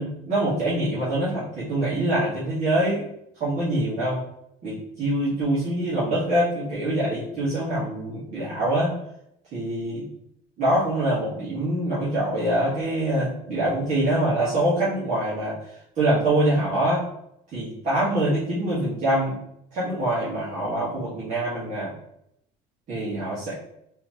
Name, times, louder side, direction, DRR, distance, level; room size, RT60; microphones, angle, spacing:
voice 1, 0.0-3.0 3.4-4.2 4.6-9.0 9.5-10.1 10.6-15.6 15.9-17.0 17.5-19.4 19.7-21.9 22.9-23.5, right 1 dB, 50° right, -9 dB, 1.5 m, -24 dB
4.1 x 2.8 x 3.0 m, 0.76 s
cardioid pair, 125°, 16 cm